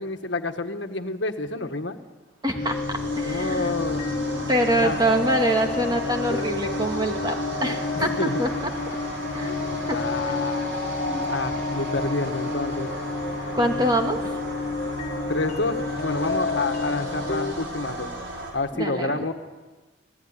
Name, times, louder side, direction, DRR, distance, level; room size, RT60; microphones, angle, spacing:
voice 1, 0.0-2.0 3.1-4.1 4.8-5.0 7.9-8.4 9.8-10.8 11.3-12.9 15.1-18.1 18.5-19.3, left 3 dB, 70° left, 7 dB, 1.6 m, -29 dB
voice 2, 2.4-2.8 3.2-3.7 4.5-8.5 9.3-10.0 10.3-10.5 11.1-11.3 13.5-14.3 18.7-19.2, right 1 dB, 20° right, 3 dB, 2.4 m, -25 dB
sound 1, 2.5-17.5, left 3 dB, 45° left, 2.0 m, -30 dB
sound 2, 2.5-18.5, right 2 dB, 75° right, 6.0 m, -35 dB
26.0 x 18.5 x 9.9 m, 1.3 s
head